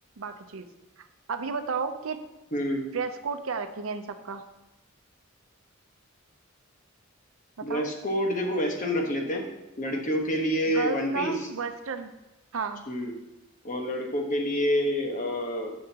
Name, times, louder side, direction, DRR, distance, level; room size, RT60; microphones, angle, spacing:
voice 1, 0.2-0.7 1.0-2.2 2.9-4.4 7.6-7.9 10.7-12.1 12.5-12.9, right 5 dB, 80° right, 8 dB, 0.6 m, -33 dB
voice 2, 2.5-2.8 7.6-9.4 9.8-11.4 12.9-13.1 13.6-15.7, equal, 40° left, 2 dB, 1.2 m, -27 dB
10.5 x 6.4 x 2.9 m, 0.99 s
head